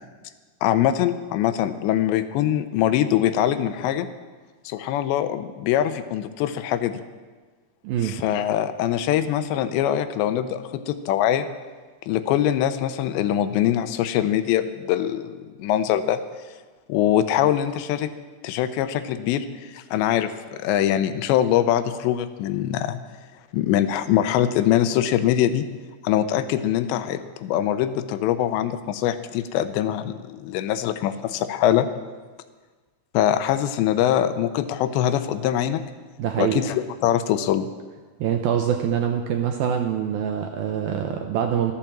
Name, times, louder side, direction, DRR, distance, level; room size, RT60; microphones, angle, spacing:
voice 1, 0.6-4.1 4.7-7.0 8.0-11.5 12.1-16.2 16.9-18.1 18.4-23.0 23.5-25.7 26.0-31.9 33.1-35.8 36.4-37.7, left 11 dB, 85° left, 11 dB, 2.9 m, -23 dB
voice 2, 7.8-8.2 36.2-36.6 38.2-41.7, right 9 dB, 75° right, 4 dB, 2.3 m, -24 dB
14.0 x 12.5 x 7.3 m, 1.4 s
omnidirectional pair, 5.1 m